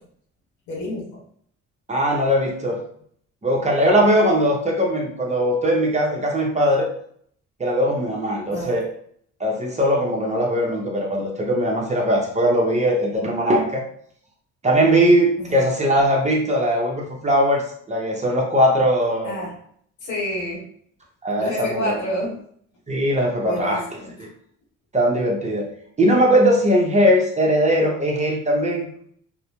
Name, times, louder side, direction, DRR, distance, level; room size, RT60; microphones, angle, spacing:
voice 1, 0.7-1.2 8.5-8.8 15.4-15.6 19.2-19.5 20.0-20.6 21.4-22.3 23.4-24.3, left 1 dB, 90° left, -3 dB, 1.1 m, -29 dB
voice 2, 1.9-2.8 3.4-6.9 7.6-8.9 9.4-13.8 14.6-19.5 21.2-21.9 22.9-23.8 24.2-24.3 24.9-25.7 26.0-28.9, equal, 25° right, -1 dB, 0.7 m, -20 dB
2.4 x 2.1 x 2.9 m, 0.63 s
cardioid pair, 90°, 30 cm